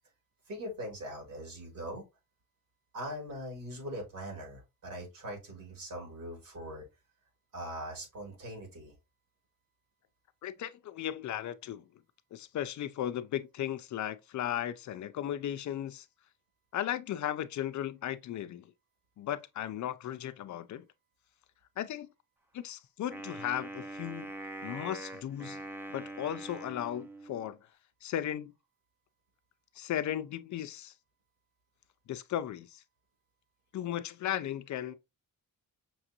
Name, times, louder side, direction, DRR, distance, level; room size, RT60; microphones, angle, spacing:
voice 1, 0.5-2.0 2.9-6.8 7.5-8.9, equal, 70° right, 2.7 m, -41 dB
voice 2, 10.4-11.8 12.3-16.1 16.7-18.7 19.2-20.9 21.8-22.1 22.5-24.3 24.6-25.6 25.9-27.6 28.0-28.5 29.8-30.9 32.1-32.8 33.7-34.9, left 11 dB, 55° left, 0.4 m, -36 dB
Wind instrument woodwind instrument, 23.1-27.5, right 2 dB, 5° right, 0.5 m, -43 dB
5.9 x 2.5 x 2.8 m
cardioid pair, 120°, 35 cm